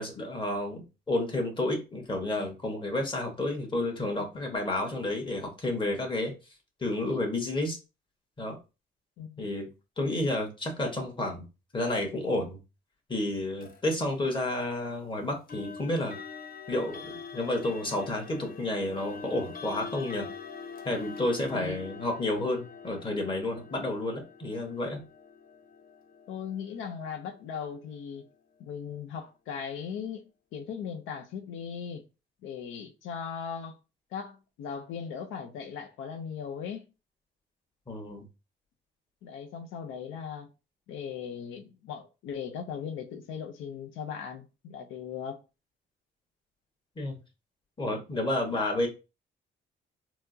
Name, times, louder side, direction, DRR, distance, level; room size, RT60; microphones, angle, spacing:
voice 1, 0.0-6.3 6.8-7.8 8.4-8.6 9.4-9.7 10.0-11.4 11.7-12.6 13.1-16.1 16.7-20.3 20.8-25.0 37.9-38.3 47.0-47.2 47.8-48.9, left 1 dB, 25° left, 1.3 m, -31 dB
voice 2, 9.2-9.5 21.5-21.8 26.3-28.3 28.6-30.2 30.5-32.0 32.4-33.8 34.1-36.9 39.2-40.5 40.9-45.4, left 7 dB, 85° left, 0.5 m, -38 dB
sound 1, 13.6-13.8 15.5-28.3, left 5 dB, 50° left, 0.8 m, -45 dB
4.3 x 2.0 x 2.7 m
cardioid pair, 90°, 20 cm